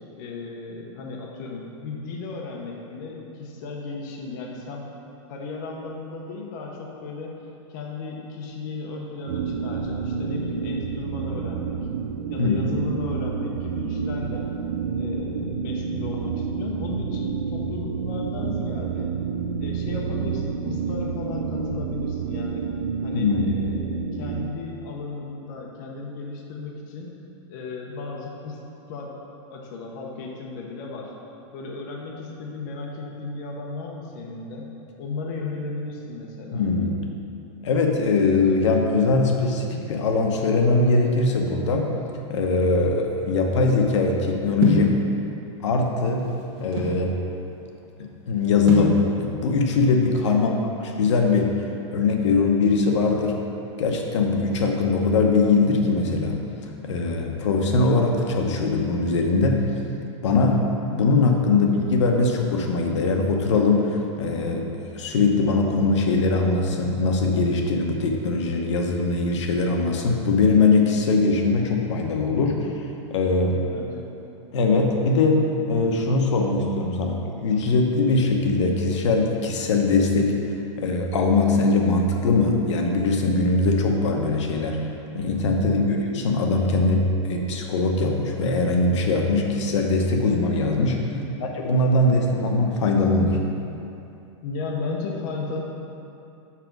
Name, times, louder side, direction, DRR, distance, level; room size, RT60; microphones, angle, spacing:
voice 1, 0.0-4.9 5.3-7.3 7.7-11.9 12.3-14.5 15.0-19.1 19.6-22.7 23.0-27.2 27.5-28.6 28.9-29.2 29.5-31.1 31.5-34.7 35.0-36.7 50.3-50.7 73.7-74.1 85.6-85.9 91.1-91.5 94.4-95.6, left 3 dB, 40° left, -1 dB, 0.8 m, -35 dB
sound 1, 9.3-24.5, right 6 dB, 80° right, 0.5 m, -29 dB
voice 2, 23.1-23.4 36.5-37.0 37.6-41.9 42.3-45.0 45.6-46.3 46.6-47.2 48.0-50.5 51.0-53.4 53.8-56.4 56.8-59.6 60.2-73.6 74.5-80.4 80.8-84.9 85.1-91.0 91.6-93.4, left 3 dB, 70° left, 2 dB, 0.9 m, -21 dB
sound 2, 44.6-45.0 45.8-47.0 48.7-49.0, right 3 dB, 55° right, 1.3 m, -24 dB
5.9 x 5.0 x 5.9 m, 2.8 s
supercardioid pair, 170°, 16 cm